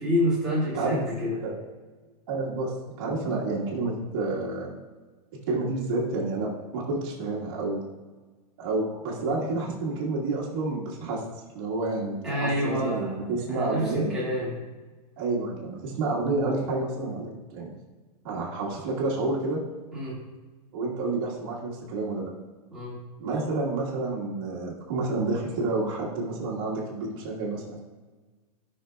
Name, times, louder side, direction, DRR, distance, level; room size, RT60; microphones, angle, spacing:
voice 1, 0.0-1.4 12.2-13.1 13.5-14.5 19.9-20.2 22.7-22.9, equal, 5° right, -10 dB, 1.9 m, -27 dB
voice 2, 2.3-2.7 3.0-4.7 5.5-7.8 8.6-11.2 11.5-14.1 15.2-17.7 18.2-19.6 20.7-22.3 23.2-27.8, right 3 dB, 35° right, -5 dB, 1.6 m, -29 dB
12.0 x 5.7 x 2.3 m, 1.3 s
supercardioid pair, 180°, 20 cm